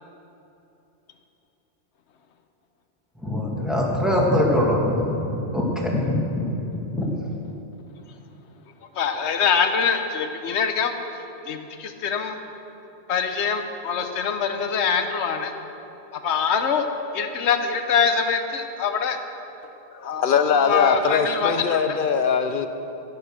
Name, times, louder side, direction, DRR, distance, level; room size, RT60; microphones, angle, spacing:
voice 1, 3.2-7.1, left 1 dB, ahead, -4 dB, 2.0 m, -23 dB
voice 2, 8.9-12.4 13.1-15.5 16.1-19.2 20.0-22.0, left 6 dB, 75° left, 7 dB, 1.1 m, -24 dB
voice 3, 19.6-22.7, left 6 dB, 55° left, 9 dB, 0.8 m, -22 dB
13.0 x 9.7 x 6.3 m, 3.0 s
omnidirectional pair, 1.2 m